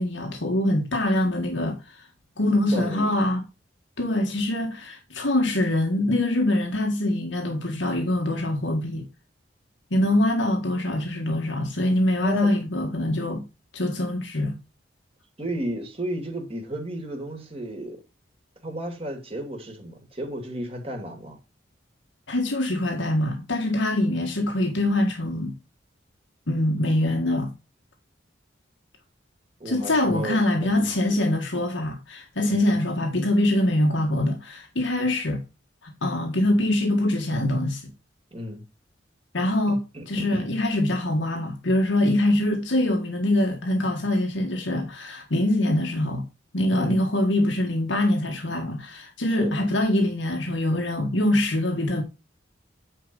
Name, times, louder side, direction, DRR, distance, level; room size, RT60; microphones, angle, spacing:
voice 1, 0.0-2.1 2.4-3.4 4.0-9.1 9.9-13.5 13.7-14.6 22.3-25.6 26.5-27.5 29.7-35.4 35.8-37.8 39.3-46.2 46.5-52.0, left 1 dB, 90° left, 1.7 m, -24 dB
voice 2, 2.7-3.1 12.2-12.5 15.4-18.0 18.6-21.4 29.6-31.2 32.4-32.8 38.3-38.6 39.7-40.4 46.7-47.0 49.3-49.6, equal, 30° right, 2.8 m, -33 dB
9.7 x 4.7 x 5.3 m
head